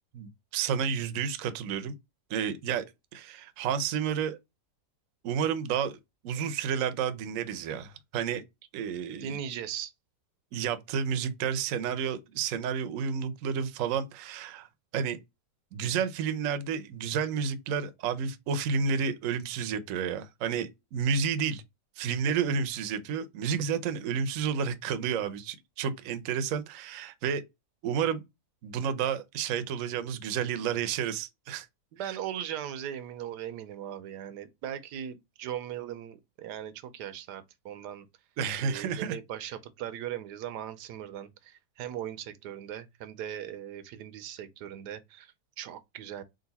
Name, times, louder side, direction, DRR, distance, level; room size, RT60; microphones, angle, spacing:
voice 1, 0.1-1.9 2.3-2.9 3.1-4.4 5.2-6.0 6.2-8.4 8.7-9.4 10.5-14.7 14.9-15.2 15.7-21.6 22.0-27.4 27.8-28.2 28.6-31.7 38.4-39.2, right 7 dB, 65° right, 0.9 m, -31 dB
voice 2, 9.2-9.9 31.9-38.1 38.6-46.2, right 10 dB, 85° right, 1.2 m, -39 dB
3.9 x 2.5 x 4.0 m
omnidirectional pair, 1.7 m